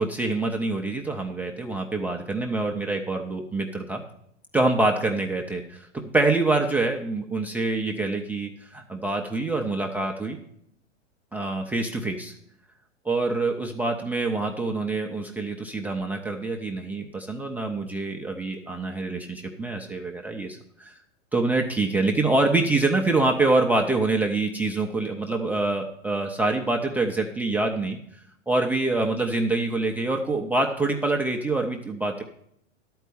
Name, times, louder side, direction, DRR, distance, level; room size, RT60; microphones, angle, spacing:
voice 1, 0.0-4.0 4.5-5.9 6.1-10.4 11.3-12.3 13.0-20.9 21.3-28.0 28.5-32.2, right 2 dB, 5° right, 0 dB, 0.3 m, -25 dB
11.5 x 4.6 x 6.7 m, 0.70 s
hypercardioid pair, 105°, 37 cm